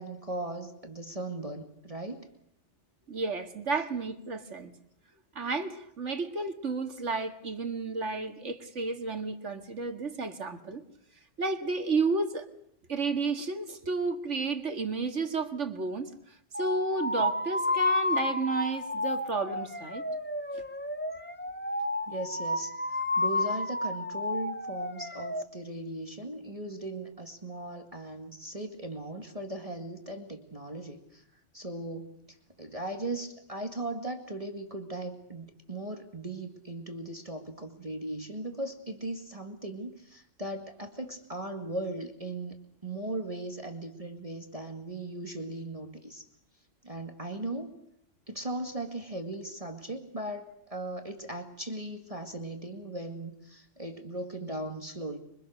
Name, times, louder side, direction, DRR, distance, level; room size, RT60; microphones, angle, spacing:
voice 1, 0.0-2.3 22.1-31.2 31.5-42.5 42.8-46.3 46.8-47.7 48.3-55.2, right 2 dB, 30° right, 5 dB, 2.3 m, -38 dB
voice 2, 3.1-4.7 5.4-10.8 11.4-12.5 12.9-16.1 16.6-20.0, right 3 dB, 70° right, 7 dB, 2.4 m, -32 dB
sound 1, 16.5-25.4, left 2 dB, 10° left, 1.0 m, -31 dB
26.5 x 24.5 x 6.6 m, 0.72 s
omnidirectional pair, 1.3 m